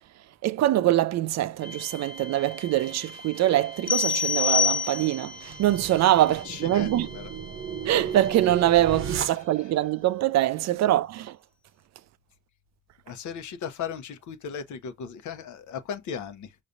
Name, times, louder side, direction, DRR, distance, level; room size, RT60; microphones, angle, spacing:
voice 1, 0.4-7.1 7.9-11.4, right 14 dB, 60° right, 0.4 m, -24 dB
sound 1, 1.6-9.3, equal, 15° right, 0.9 m, -46 dB
sound 2, 3.9-5.4, left 6 dB, 30° left, 0.4 m, -25 dB
sound 3, 5.3-9.9, right 7 dB, 45° right, 0.9 m, -35 dB
voice 2, 6.3-7.3 9.3-9.7 13.1-16.6, left 7 dB, 75° left, 0.9 m, -37 dB
5.3 x 3.1 x 2.5 m
cardioid pair, 90°, 30 cm